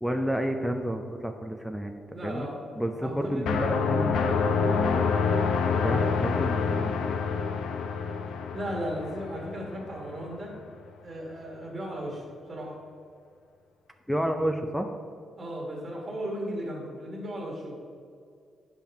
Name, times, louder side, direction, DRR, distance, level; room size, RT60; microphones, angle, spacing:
voice 1, 0.0-2.5 2.8-5.1 5.8-7.4 14.1-14.9, equal, ahead, 5 dB, 0.4 m, -31 dB
voice 2, 2.1-2.6 3.0-3.5 8.3-10.5 11.0-12.7 15.4-17.8, equal, 30° right, -2 dB, 1.7 m, -36 dB
sound 1, 3.5-10.2, left 5 dB, 90° left, 0.6 m, -27 dB
9.0 x 5.6 x 4.5 m, 2.3 s
cardioid pair, 140°, 0 cm